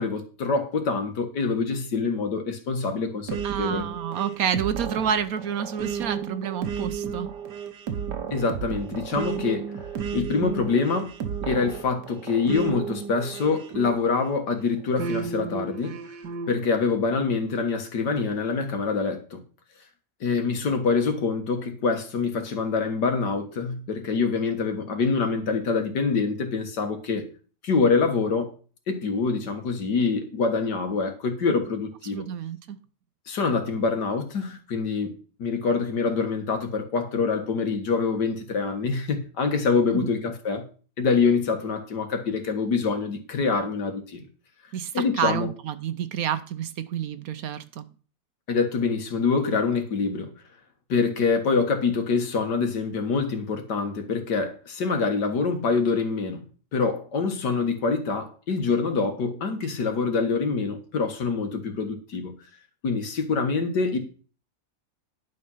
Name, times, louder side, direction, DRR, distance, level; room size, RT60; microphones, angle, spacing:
voice 1, 0.0-3.9 8.3-9.6 10.1-11.1 11.5-16.0 16.5-19.4 20.2-27.3 27.6-28.5 28.9-32.3 33.3-40.7 41.0-44.2 44.9-45.5 48.5-50.3 50.9-56.4 56.7-62.4 62.8-64.0, left 4 dB, 85° left, 2.2 m, -25 dB
sound 1, 3.3-14.4 15.0-16.5, right 6 dB, 90° right, 1.7 m, -33 dB
voice 2, 3.4-7.3 32.1-32.8 39.9-40.1 44.7-47.9, right 8 dB, 65° right, 1.0 m, -29 dB
10.5 x 5.5 x 5.6 m
omnidirectional pair, 1.8 m